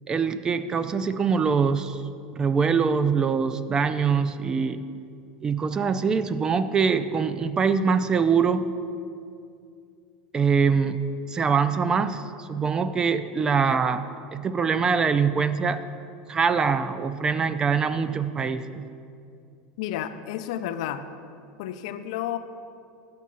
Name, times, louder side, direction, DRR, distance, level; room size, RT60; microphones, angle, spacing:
voice 1, 0.1-2.0 2.3-4.8 5.4-8.7 10.3-11.0 11.3-15.8 16.3-18.9, right 5 dB, 20° right, 12 dB, 0.3 m, -23 dB
voice 2, 19.8-21.0 21.6-22.4, left 11 dB, 70° left, 10 dB, 0.5 m, -31 dB
8.3 x 6.1 x 5.5 m, 2.4 s
supercardioid pair, 135°, 4 cm